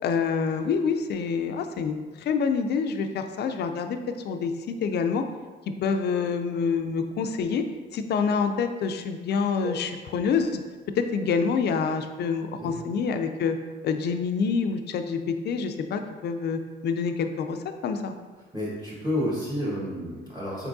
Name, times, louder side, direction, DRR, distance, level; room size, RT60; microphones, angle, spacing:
voice 1, 0.0-5.2 5.8-7.6 7.9-10.6 11.0-13.6 13.8-17.6 17.8-18.1, left 5 dB, 60° left, 7 dB, 0.4 m, -27 dB
voice 2, 18.5-20.7, equal, 20° right, -7 dB, 1.4 m, -30 dB
4.5 x 3.5 x 2.6 m, 1.3 s
cardioid pair, 90°, 20 cm